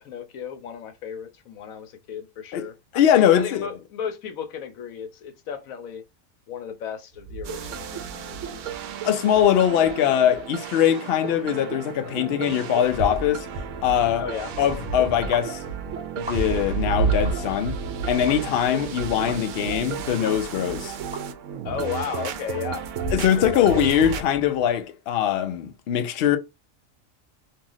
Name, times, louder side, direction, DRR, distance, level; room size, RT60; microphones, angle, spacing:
voice 1, 0.0-6.0 6.5-8.7 12.0-12.4 14.2-14.5 21.6-22.9 23.2-23.9 24.2-24.3, left 7 dB, 85° left, 1.2 m, -35 dB
voice 2, 2.9-3.7 9.0-13.5 13.8-14.3 14.6-15.6 16.2-17.8 18.1-21.0 23.1-26.4, left 10 dB, 60° left, 0.7 m, -22 dB
sound 1, 7.1-9.0 9.3-9.9 10.3-10.4 12.8-21.3 21.6-24.6, right 4 dB, 40° right, 0.8 m, -33 dB
sound 2, 7.4-24.2, right 8 dB, 70° right, 0.9 m, -34 dB
sound 3, 15.3-15.5 16.2-16.7 17.2-17.4 18.3-18.4 19.3-19.4 20.2-20.4 21.1-21.2, equal, 5° right, 0.6 m, -37 dB
3.0 x 2.7 x 3.8 m
omnidirectional pair, 1.4 m